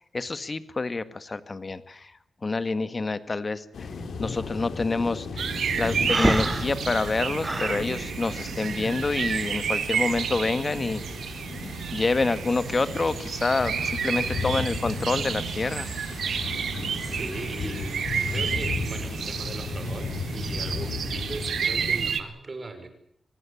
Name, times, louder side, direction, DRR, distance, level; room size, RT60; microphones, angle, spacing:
voice 1, 0.1-2.1 2.4-3.9 4.2-5.5 5.8-11.0 11.6-15.9, left 3 dB, 35° left, 13 dB, 1.8 m, -27 dB
sound 1, 3.7-22.1, left 4 dB, 75° left, 3.9 m, -35 dB
sound 2, 5.4-22.2, right 7 dB, 85° right, 2.1 m, -31 dB
Breathing, 6.1-7.8, right 2 dB, 20° right, 0.9 m, -27 dB
voice 2, 14.2-14.7 17.0-22.9, right 3 dB, 35° right, 9 dB, 5.6 m, -38 dB
25.0 x 19.0 x 8.6 m, 0.70 s
wide cardioid pair, 110°, 0 cm